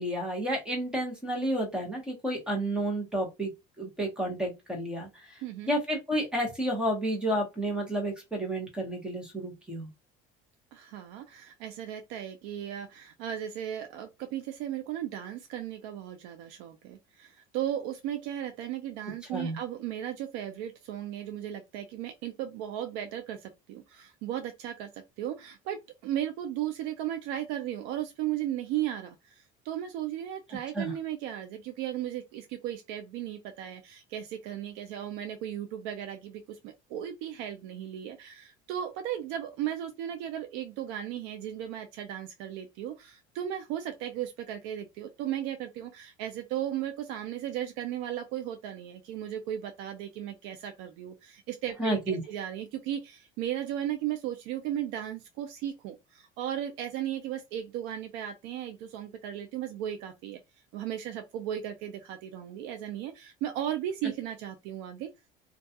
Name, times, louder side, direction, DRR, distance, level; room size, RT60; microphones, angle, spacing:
voice 1, 0.0-3.5 3.8-9.9 19.3-19.6 30.7-30.9 51.8-52.2, right 1 dB, 5° right, 0.8 m, -31 dB
voice 2, 5.4-5.7 10.7-60.4 60.7-65.1, right 11 dB, 80° right, 0.4 m, -36 dB
2.3 x 2.2 x 2.6 m
cardioid pair, 175°, 19 cm